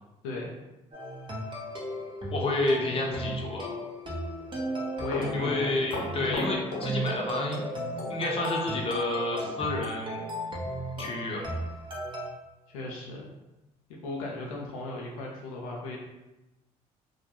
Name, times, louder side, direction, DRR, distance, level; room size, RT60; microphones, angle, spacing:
voice 1, 0.2-0.5 5.0-6.1 12.7-13.3 13.9-16.0, left 2 dB, 90° left, -2 dB, 0.4 m, -37 dB
sound 1, 0.9-12.3, equal, 30° right, 0.8 m, -35 dB
voice 2, 2.3-3.8 5.3-7.6 8.1-10.3 11.0-11.5, left 2 dB, 35° left, -1 dB, 0.7 m, -30 dB
Run, 5.1-7.7 8.0-8.1 9.4-9.6 9.9-10.0 10.5-10.6 11.0-11.1 11.7-11.8, left 3 dB, 75° left, 0.8 m, -37 dB
2.3 x 2.1 x 2.9 m, 1.0 s
hypercardioid pair, 60°, 17 cm